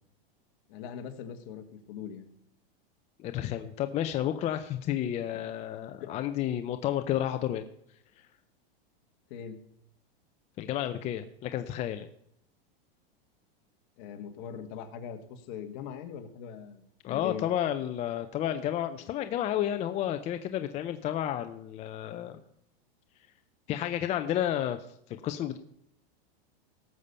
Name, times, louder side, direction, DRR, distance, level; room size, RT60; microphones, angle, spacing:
voice 1, 0.7-2.3 6.0-6.1 9.3-9.6 14.0-17.4, left 8 dB, 50° left, 7 dB, 1.6 m, -41 dB
voice 2, 3.2-7.7 10.6-12.1 17.0-22.4 23.7-24.9 25.2-25.6, left 11 dB, 25° left, 8 dB, 0.5 m, -31 dB
17.5 x 6.8 x 5.5 m, 0.74 s
supercardioid pair, 145°, 30 cm